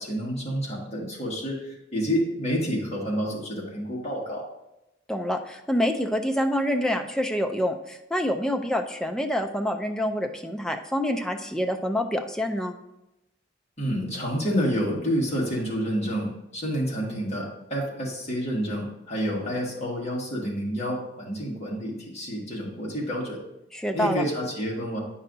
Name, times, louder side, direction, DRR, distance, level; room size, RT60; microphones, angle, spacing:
voice 1, 0.0-4.4 13.8-23.4 23.9-25.0, equal, 35° left, -4 dB, 1.6 m, -29 dB
voice 2, 5.1-12.8 23.7-24.2, equal, 5° left, 4 dB, 0.3 m, -27 dB
9.0 x 5.5 x 2.6 m, 0.89 s
head